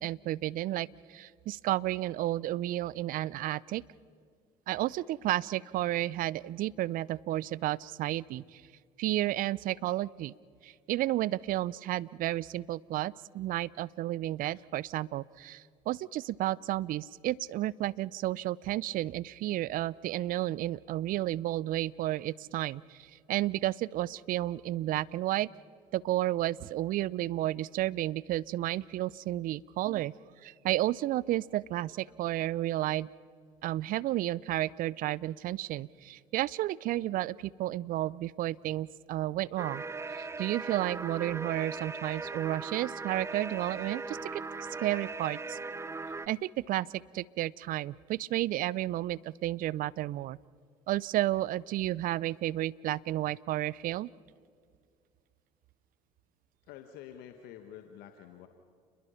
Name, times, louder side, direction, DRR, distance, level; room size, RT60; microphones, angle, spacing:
voice 1, 0.0-3.8 4.7-8.6 9.0-10.3 10.6-25.5 25.9-30.1 30.4-33.1 33.6-45.6 46.3-46.9 47.1-50.4 50.9-54.1, right 15 dB, 55° right, 23 dB, 0.5 m, -32 dB
sound 1, 39.6-46.3, right 3 dB, 15° right, 0.8 m, -39 dB
voice 2, 56.7-58.5, left 10 dB, 70° left, 6 dB, 1.4 m, -48 dB
29.5 x 21.5 x 5.7 m, 2.1 s
hypercardioid pair, 60°, 17 cm